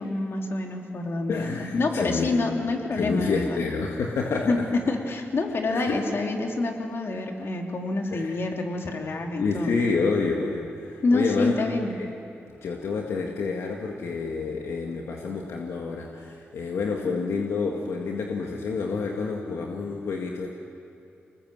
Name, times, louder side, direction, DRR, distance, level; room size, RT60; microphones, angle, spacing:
voice 1, 0.0-3.6 4.4-4.6 4.9-9.8 11.0-12.0, left 2 dB, 60° left, 2 dB, 3.1 m, -27 dB
voice 2, 1.3-2.3 2.9-4.5 5.7-6.0 8.1-8.3 9.4-11.5 12.0-12.1 12.6-20.5, left 4 dB, 80° left, 0 dB, 1.9 m, -28 dB
25.0 x 20.0 x 7.7 m, 2.7 s
cardioid pair, 60°, 5 cm